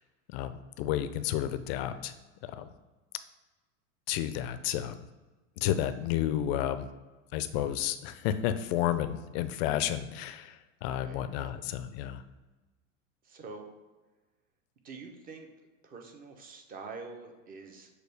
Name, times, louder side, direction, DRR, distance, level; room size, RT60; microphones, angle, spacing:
voice 1, 0.3-2.1 2.4-2.7 4.1-5.0 5.6-6.9 7.3-10.5 10.8-12.2, left 11 dB, 50° left, 11 dB, 0.4 m, -31 dB
voice 2, 10.9-11.6 13.2-13.7 14.8-15.5 15.8-17.9, right 4 dB, 20° right, 4 dB, 0.6 m, -46 dB
6.4 x 2.3 x 3.3 m, 1.2 s
hypercardioid pair, 120°, 40 cm